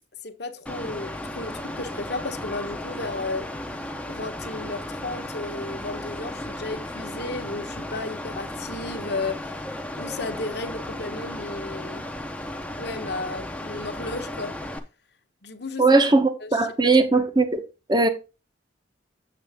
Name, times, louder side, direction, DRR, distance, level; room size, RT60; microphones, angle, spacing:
voice 1, 0.2-3.5 4.1-9.6 10.0-12.0 12.8-14.6 15.4-16.0 16.4-16.6, left 2 dB, 55° left, 1.1 m, -34 dB
Mechanical fan, 0.7-14.8, left 1 dB, 5° left, 0.7 m, -35 dB
voice 2, 15.8-17.6 17.9-18.1, right 3 dB, 20° right, 0.9 m, -19 dB
7.7 x 6.8 x 3.5 m
head